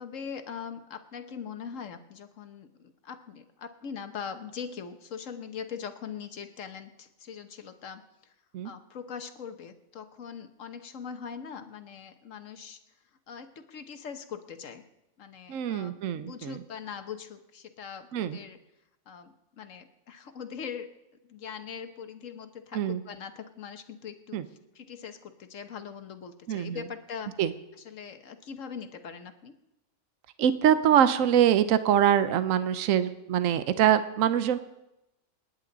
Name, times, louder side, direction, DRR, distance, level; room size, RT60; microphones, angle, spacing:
voice 1, 0.0-8.3 8.6-12.8 13.3-14.8 15.2-18.6 19.1-20.9 21.2-27.3 27.8-29.5, left 7 dB, 65° left, 8 dB, 1.3 m, -41 dB
voice 2, 15.5-16.6 18.1-18.4 22.7-23.0 24.3-24.4 26.5-26.8 27.4-27.5 30.4-34.6, right 9 dB, 70° right, 12 dB, 1.1 m, -24 dB
27.5 x 10.0 x 3.9 m, 0.92 s
omnidirectional pair, 1.5 m